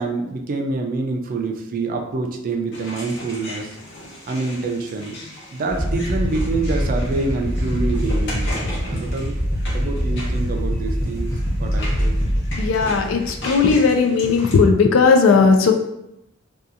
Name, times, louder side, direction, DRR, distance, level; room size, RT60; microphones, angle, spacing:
voice 1, 0.0-3.8 4.3-5.2 5.5-8.5 8.8-9.3 9.7-11.3 11.6-12.2, right 3 dB, 45° right, 3 dB, 0.4 m, -26 dB
sound 1, 2.7-14.5, left 1 dB, 60° left, 0.8 m, -37 dB
sound 2, 5.7-13.9, equal, 15° left, 0.8 m, -23 dB
voice 2, 12.6-15.7, left 4 dB, 85° left, 4 dB, 0.4 m, -16 dB
2.7 x 2.3 x 2.4 m, 0.84 s
head